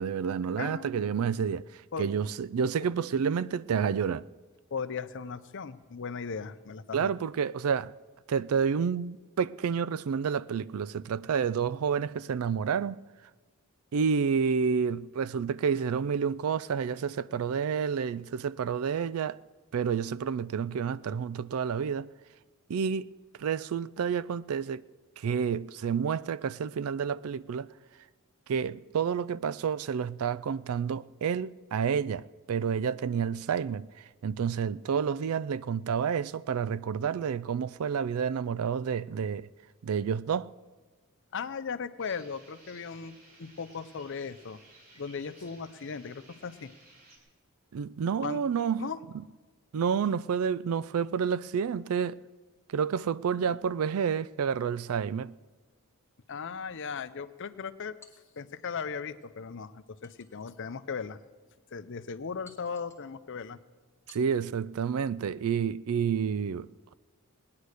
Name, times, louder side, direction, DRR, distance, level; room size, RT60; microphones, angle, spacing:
voice 1, 0.0-4.3 6.9-7.9 8.3-13.0 13.9-19.4 19.7-22.1 22.7-23.1 23.4-24.8 25.2-27.7 28.5-39.5 39.8-40.5 47.7-48.9 49.7-52.2 52.7-55.3 64.1-66.9, right 6 dB, 70° right, 0.4 m, -29 dB
voice 2, 0.6-1.1 1.9-2.1 4.7-7.1 41.3-44.6 45.0-46.7 48.2-48.4 48.8-49.0 56.3-58.0 58.4-61.2 61.7-63.6, left 5 dB, 55° left, 0.6 m, -37 dB
sound 1, 42.0-47.2, right 2 dB, 40° right, 3.6 m, -57 dB
sound 2, 58.0-58.8 60.0-60.8 61.4-61.5 62.4-63.1 64.1-64.6, left 3 dB, 10° left, 1.4 m, -59 dB
19.0 x 9.6 x 6.5 m
head